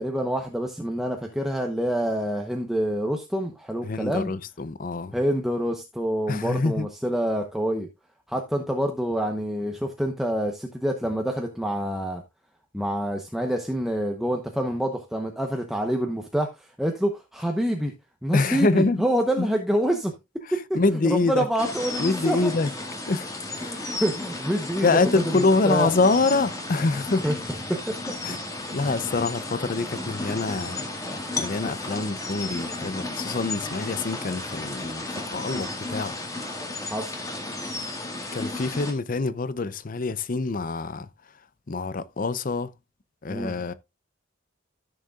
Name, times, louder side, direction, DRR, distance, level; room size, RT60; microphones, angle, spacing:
voice 1, 0.0-4.3 5.1-7.9 8.3-12.2 12.7-17.9 18.2-20.1 20.5-20.6 21.3-22.5 23.6-24.9 25.6-25.9 27.2-27.3 27.7-27.8 31.9-32.1 36.9-37.1 43.3-43.5, equal, ahead, 0.9 m, -27 dB
voice 2, 3.8-5.1 6.3-6.9 18.3-19.0 19.4-19.5 20.7-21.5 22.0-22.7 23.1-23.3 23.6-23.8 24.8-27.2 28.2-28.4 28.7-30.9 31.4-36.2 38.3-41.1 41.7-42.7 43.2-43.7, left 3 dB, 45° left, 0.5 m, -25 dB
sound 1, 21.6-38.9, left 2 dB, 15° left, 1.7 m, -33 dB
15.0 x 6.6 x 2.4 m
head